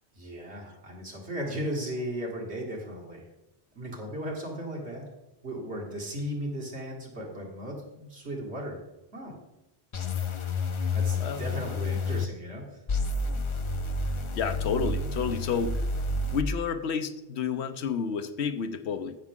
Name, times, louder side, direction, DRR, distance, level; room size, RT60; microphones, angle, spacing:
voice 1, 0.1-3.3 3.7-5.1 5.4-8.8 9.1-9.3 10.9-12.8, equal, 75° right, -2 dB, 2.5 m, -36 dB
sound 1, 9.9-12.2 12.9-16.4, left 3 dB, 35° left, 0.5 m, -30 dB
voice 2, 14.4-15.8 16.3-19.2, left 6 dB, 75° left, 9 dB, 1.0 m, -30 dB
15.5 x 6.1 x 3.7 m, 0.95 s
omnidirectional pair, 1.1 m